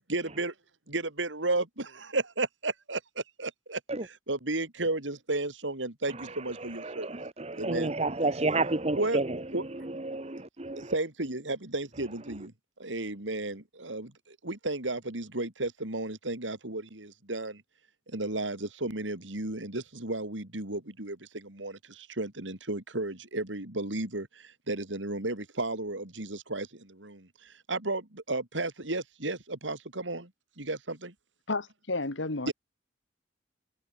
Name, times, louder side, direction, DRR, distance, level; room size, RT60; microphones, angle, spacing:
voice 1, 0.1-0.5 0.9-7.2 7.6-7.9 8.9-9.2 9.5-9.6 10.8-12.5 12.8-17.6 18.1-30.3 30.6-31.1 32.5-32.6, right 2 dB, 90° right, 3.8 m, -33 dB
voice 2, 6.8-9.4 9.8-10.9, right 2 dB, 35° right, 1.4 m, -30 dB
voice 3, 31.5-32.5, left 3 dB, 90° left, 2.0 m, -32 dB
head